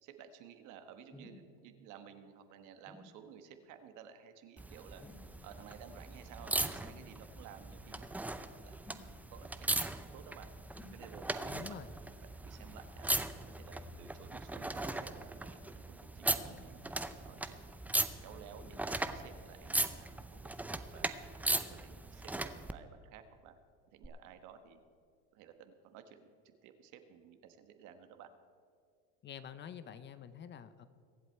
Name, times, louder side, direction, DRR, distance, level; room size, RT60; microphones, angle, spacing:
voice 1, 0.0-5.0 5.4-8.7 9.3-10.5 10.9-11.8 12.4-13.1 13.5-17.6 18.2-21.1 21.8-23.6 23.9-24.8 25.3-28.3, right 8 dB, 65° right, 8 dB, 1.4 m, -54 dB
sound 1, 1.1-1.4 2.9-3.1 5.0-5.4 6.8-7.1 8.8-9.1 10.7-11.0 12.6-12.8 14.5-14.8 16.5-17.0 18.6-18.8 19.6-19.7, left 2 dB, 15° left, 2.2 m, -55 dB
sound 2, 4.6-22.7 24.0-24.1, right 2 dB, 5° right, 0.5 m, -39 dB
voice 2, 11.5-11.9 29.2-30.9, left 8 dB, 35° left, 13 dB, 0.7 m, -47 dB
23.0 x 8.1 x 4.5 m, 2.2 s
supercardioid pair, 115°, 33 cm